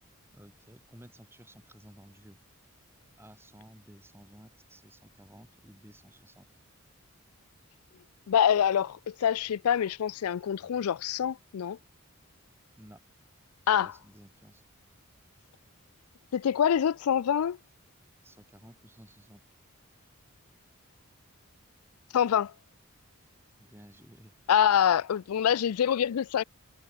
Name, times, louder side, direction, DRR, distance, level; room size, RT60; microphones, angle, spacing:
voice 1, 0.3-2.4 3.2-6.5 12.7-13.0 13.8-14.6 18.2-19.4 23.6-24.4, equal, 10° right, 4.7 m, -54 dB
voice 2, 8.3-11.8 13.7-13.9 16.3-17.6 22.1-22.5 24.5-26.4, left 9 dB, 85° left, 0.4 m, -25 dB
head